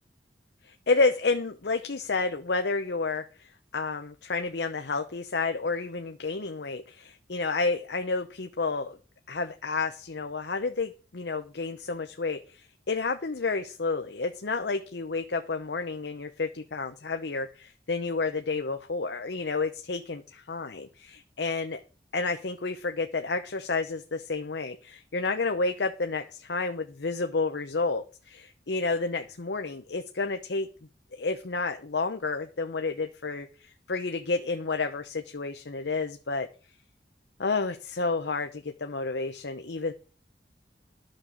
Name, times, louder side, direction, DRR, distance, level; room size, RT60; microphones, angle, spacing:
voice 1, 0.7-3.2 3.7-9.0 9.3-21.8 22.1-30.7 31.1-36.5 37.4-39.9, left 3 dB, 75° left, 7 dB, 0.8 m, -30 dB
12.5 x 6.4 x 6.4 m, 0.38 s
head